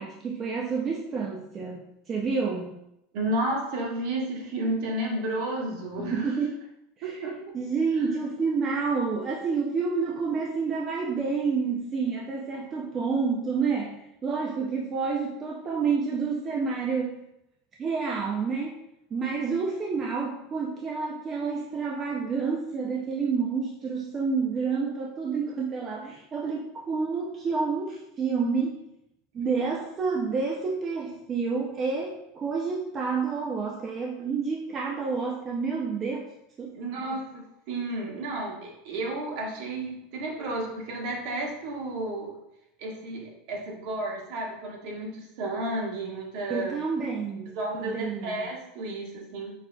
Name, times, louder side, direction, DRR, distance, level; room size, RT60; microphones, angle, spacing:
voice 1, 0.0-2.8 6.0-6.5 7.0-7.2 7.5-17.2 17.8-18.8 19.1-28.8 29.3-36.3 36.6-36.8 37.1-37.2 46.5-48.5, right 5 dB, 25° right, -2 dB, 0.5 m, -29 dB
voice 2, 3.1-6.3 7.0-7.6 36.7-37.2 37.7-42.4 42.8-46.8 47.5-49.5, right 1 dB, 60° right, -1 dB, 1.2 m, -32 dB
6.0 x 2.6 x 2.3 m, 0.82 s
supercardioid pair, 130°, 0 cm